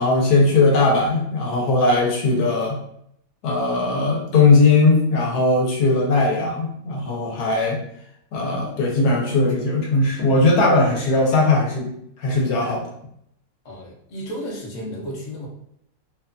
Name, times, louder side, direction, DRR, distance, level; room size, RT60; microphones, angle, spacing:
voice 1, 0.0-2.8 3.4-7.8 8.3-11.9 12.2-12.8, left 3 dB, 80° left, 0 dB, 1.2 m, -19 dB
voice 2, 13.6-15.5, equal, 50° left, -2 dB, 0.5 m, -33 dB
2.8 x 2.2 x 2.4 m, 0.71 s
omnidirectional pair, 1.6 m